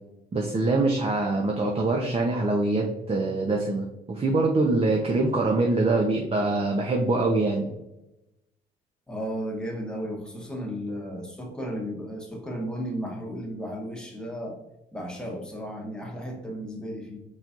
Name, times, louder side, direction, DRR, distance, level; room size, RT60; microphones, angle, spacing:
voice 1, 0.3-7.7, right 2 dB, 30° right, 0 dB, 0.6 m, -24 dB
voice 2, 9.1-14.6 14.9-17.2, equal, 5° left, -1 dB, 1.2 m, -34 dB
4.5 x 4.0 x 2.4 m, 0.92 s
cardioid pair, 90°, 20 cm